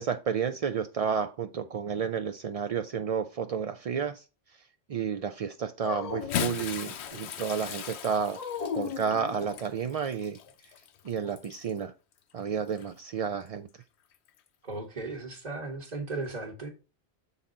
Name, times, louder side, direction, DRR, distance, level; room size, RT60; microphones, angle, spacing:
voice 1, 0.0-4.2 4.9-8.4 8.7-10.4 11.0-11.9 12.3-13.7, right 7 dB, 70° right, 0.3 m, -31 dB
Dog, 5.8-7.2 8.3-10.0, left 6 dB, 40° left, 0.7 m, -37 dB
Bathtub (filling or washing) / Splash splatter, 6.1-11.8 12.7-12.8 14.3-14.4, left 9 dB, 75° left, 0.9 m, -38 dB
voice 2, 14.6-16.7, right 3 dB, 40° right, 1.2 m, -36 dB
7.3 x 4.0 x 3.8 m
omnidirectional pair, 1.1 m